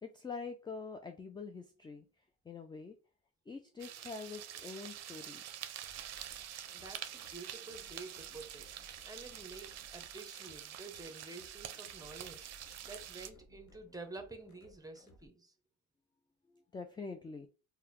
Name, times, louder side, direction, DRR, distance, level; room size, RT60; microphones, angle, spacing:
voice 1, 0.0-2.1 2.4-3.0 3.5-5.4 16.5-17.5, left 4 dB, 15° left, 0.3 m, -45 dB
sound 1, 3.8-13.3, right 10 dB, 60° right, 0.5 m, -47 dB
sound 2, 5.8-15.3, left 1 dB, 70° left, 0.8 m, -62 dB
voice 2, 6.7-12.5 12.8-15.5, right 3 dB, 10° right, 0.7 m, -50 dB
3.7 x 2.2 x 3.0 m
cardioid pair, 90°, 30 cm